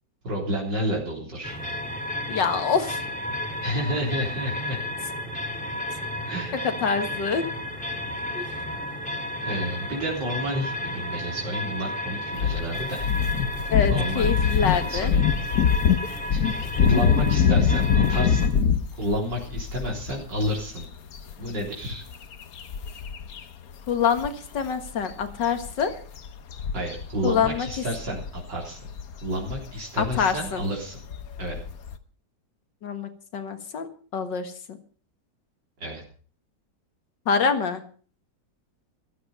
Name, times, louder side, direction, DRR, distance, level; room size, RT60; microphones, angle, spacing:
voice 1, 0.2-1.6 3.6-4.8 6.3-6.6 9.4-13.1 13.8-14.3 14.7-15.3 16.3-16.5 16.7-18.6 18.9-20.9 21.4-22.0 26.7-28.9 29.2-31.0 31.4-31.6 35.8-36.0, equal, 80° right, -3 dB, 4.5 m, -30 dB
sound 1, 1.4-18.5, left 1 dB, 5° left, 2.1 m, -33 dB
voice 2, 2.3-3.0 6.6-7.4 8.3-8.5 13.7-15.1 23.9-25.9 27.2-27.7 30.0-30.6 32.8-34.8 37.3-37.8, left 6 dB, 80° left, 8 dB, 2.3 m, -25 dB
sound 2, 12.3-23.4 23.7-23.9 24.2-32.0, left 7 dB, 60° left, 1.4 m, -25 dB
14.5 x 13.0 x 5.5 m, 0.42 s
omnidirectional pair, 1.9 m